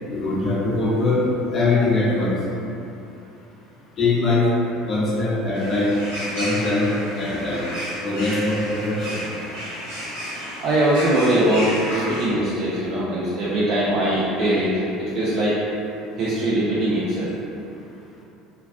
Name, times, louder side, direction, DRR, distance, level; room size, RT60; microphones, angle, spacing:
voice 1, 0.1-2.4 4.0-4.5 4.9-5.9 6.3-7.6 8.0-9.2, left 2 dB, 40° left, -5 dB, 0.6 m, -22 dB
sound 1, 5.5-12.3, equal, 80° right, 0.9 m, -32 dB
voice 2, 10.6-14.7 15.0-15.6 16.2-17.3, right 1 dB, 45° right, -8 dB, 0.4 m, -21 dB
2.3 x 2.2 x 2.4 m, 2.8 s
figure-of-eight pair, 65°, 0 cm